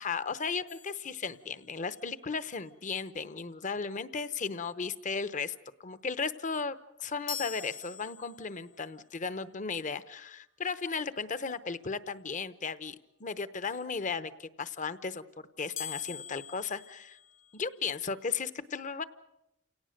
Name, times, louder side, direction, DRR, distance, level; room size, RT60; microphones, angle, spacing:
voice 1, 0.0-5.5 5.8-15.2 15.6-17.2 17.5-19.0, left 5 dB, 40° left, 14 dB, 0.9 m, -35 dB
sound 1, 0.7-2.0 7.3-8.8 15.8-17.9, left 8 dB, 70° left, 0.8 m, -44 dB
29.5 x 18.0 x 6.5 m, 0.88 s
head